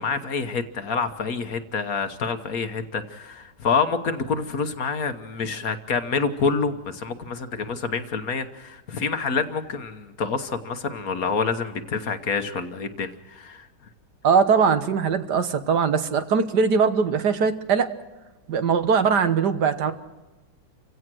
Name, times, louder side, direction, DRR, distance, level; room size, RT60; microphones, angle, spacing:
voice 1, 0.0-13.7, left 5 dB, 55° left, 8 dB, 1.6 m, -27 dB
voice 2, 14.2-17.9 18.5-19.9, right 6 dB, 65° right, 9 dB, 1.7 m, -21 dB
29.0 x 16.5 x 6.2 m, 1.2 s
omnidirectional pair, 2.0 m